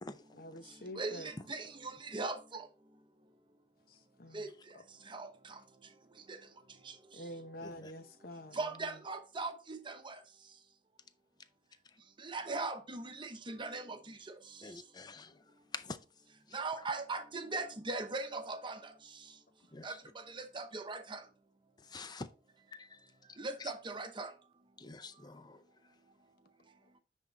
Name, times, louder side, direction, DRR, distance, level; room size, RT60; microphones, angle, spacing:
voice 1, 0.3-1.3 3.9-4.8 7.1-9.0, left 1 dB, 55° left, 0.8 m, -48 dB
voice 2, 1.0-2.7 4.3-4.5 5.1-5.3 8.5-10.2 12.2-14.2 16.5-18.8 19.8-19.9 20.3-21.2 23.4-24.3, right 3 dB, 25° right, 0.8 m, -39 dB
voice 3, 7.6-7.9 14.6-16.0 16.5-16.6 19.7-20.0 21.8-22.3 22.7-23.1 23.6-23.7 24.8-25.6, left 3 dB, 25° left, 0.5 m, -47 dB
9.7 x 3.7 x 4.0 m
head